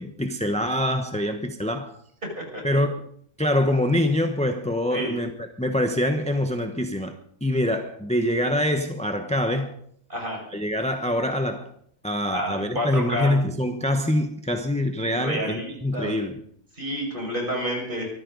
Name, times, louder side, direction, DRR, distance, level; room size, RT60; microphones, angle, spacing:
voice 1, 0.0-2.0 2.6-3.1 3.4-7.2 7.4-9.8 10.5-11.7 12.0-16.4, left 1 dB, 5° left, 0.8 m, -25 dB
voice 2, 10.1-10.4 12.3-13.3 15.1-16.1 16.8-18.1, equal, 30° right, 6.3 m, -29 dB
24.0 x 14.0 x 4.0 m
omnidirectional pair, 1.7 m